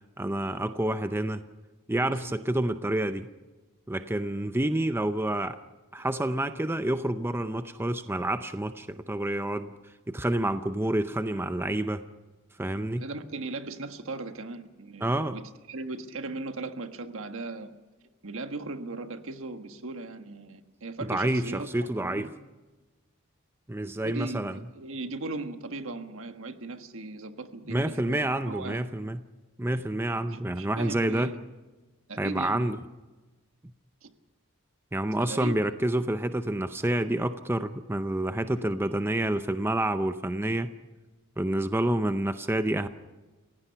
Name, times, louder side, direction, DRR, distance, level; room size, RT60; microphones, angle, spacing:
voice 1, 0.2-1.4 1.9-3.3 3.9-5.6 5.9-9.7 10.1-12.0 12.6-13.1 15.0-15.4 21.0-22.3 23.7-24.6 27.7-29.2 29.6-31.3 32.2-32.8 34.9-40.7 41.4-42.9, right 1 dB, 10° right, 10 dB, 0.6 m, -28 dB
voice 2, 12.9-15.4 15.7-17.7 18.2-22.3 24.0-28.9 30.2-31.4 32.1-32.7 34.0-34.1 35.2-35.6, right 2 dB, 65° right, 8 dB, 1.5 m, -38 dB
29.5 x 17.0 x 5.8 m, 1.2 s
head